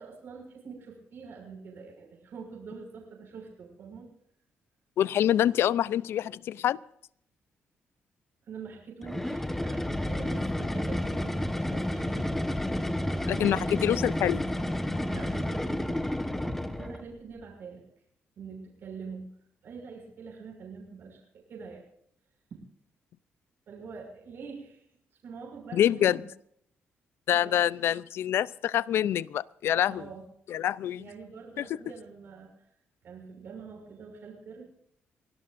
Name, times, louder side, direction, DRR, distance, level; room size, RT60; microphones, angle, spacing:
voice 1, 0.0-4.1 8.4-12.3 13.2-14.0 15.1-16.2 16.8-17.9 18.4-19.3 19.6-21.8 22.5-22.6 23.7-24.8 25.2-26.2 27.3-27.6 29.9-30.2 30.5-30.6 31.0-32.5 33.0-34.6, right 5 dB, 60° right, 6.5 m, -45 dB
voice 2, 5.0-6.8 13.2-14.4 25.7-26.2 27.3-30.0 30.5-31.1 31.6-31.7, left 11 dB, 75° left, 0.5 m, -26 dB
sound 1, 9.0-17.1, left 1 dB, 5° left, 1.4 m, -30 dB
25.0 x 18.0 x 2.6 m
cardioid pair, 130°, 4 cm